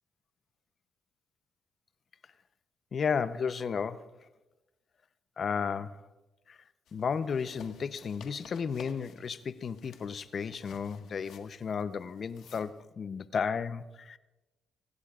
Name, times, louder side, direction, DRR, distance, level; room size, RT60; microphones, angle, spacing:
voice 1, 2.9-4.1 5.4-6.0 6.5-6.6 6.9-14.2, left 6 dB, 50° left, 0.7 m, -33 dB
sound 1, 6.9-12.8, left 7 dB, 75° left, 1.5 m, -55 dB
25.0 x 16.5 x 2.4 m
cardioid pair, 90°, 0 cm